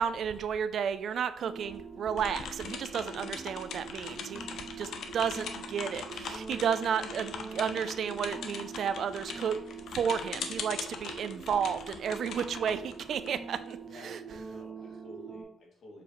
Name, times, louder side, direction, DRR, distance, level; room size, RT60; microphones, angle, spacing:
voice 1, 0.0-9.6 9.9-14.2, right 7 dB, 65° right, 13 dB, 0.4 m, -32 dB
sound 1, 1.4-15.4, right 6 dB, 35° right, 2.2 m, -44 dB
sound 2, 2.2-13.7, left 6 dB, 70° left, 0.7 m, -41 dB
voice 2, 13.8-16.0, left 1 dB, 55° left, -2 dB, 2.4 m, -52 dB
6.8 x 4.7 x 3.1 m, 0.76 s
cardioid pair, 90°, 0 cm